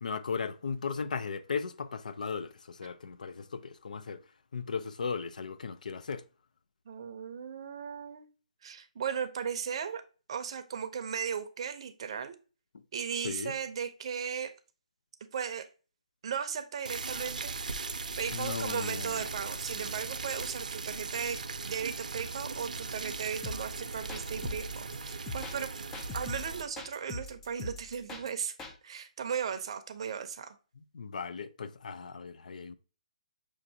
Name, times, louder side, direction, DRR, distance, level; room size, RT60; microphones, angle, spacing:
voice 1, 0.0-4.2 4.5-6.2 13.2-13.5 18.3-19.2 30.9-32.7, left 5 dB, 75° left, 0.5 m, -36 dB
voice 2, 6.9-8.3 8.6-10.0 10.3-12.4 12.9-14.5 15.3-15.7 16.2-21.4 21.6-25.7 26.1-28.5 28.8-30.6, right 7 dB, 45° right, 0.6 m, -36 dB
boiling water, 16.8-26.6, right 4 dB, 90° right, 0.6 m, -38 dB
sound 1, 23.4-28.8, left 3 dB, 10° left, 0.3 m, -42 dB
6.3 x 2.5 x 2.7 m
hypercardioid pair, 170°, 4 cm